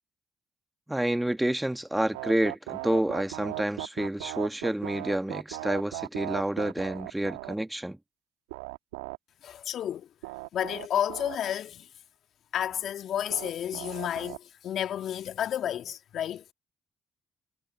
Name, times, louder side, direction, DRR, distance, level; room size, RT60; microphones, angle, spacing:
voice 1, 0.9-8.0, right 1 dB, 10° right, 1.5 m, -29 dB
sound 1, 2.1-7.5 8.5-9.2 10.2-11.4 13.3-14.4, right 21 dB, 85° right, 1.4 m, -37 dB
voice 2, 9.4-10.1 10.5-11.9 12.5-16.4, left 10 dB, 65° left, 2.0 m, -31 dB
hypercardioid pair, 45°, 0 cm